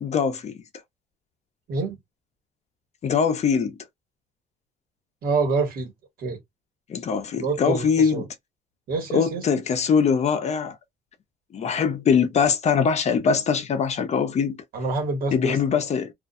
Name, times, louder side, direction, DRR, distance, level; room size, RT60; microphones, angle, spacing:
voice 1, 0.0-0.6 3.0-3.8 6.9-8.2 9.1-10.8 11.5-14.6 15.3-16.1, left 6 dB, 40° left, 0.6 m, -22 dB
voice 2, 5.2-5.9 6.2-6.4 7.4-8.3 8.9-9.5 14.7-15.8, right 4 dB, 60° right, 1.3 m, -26 dB
2.5 x 2.2 x 2.5 m
cardioid pair, 110°, 17 cm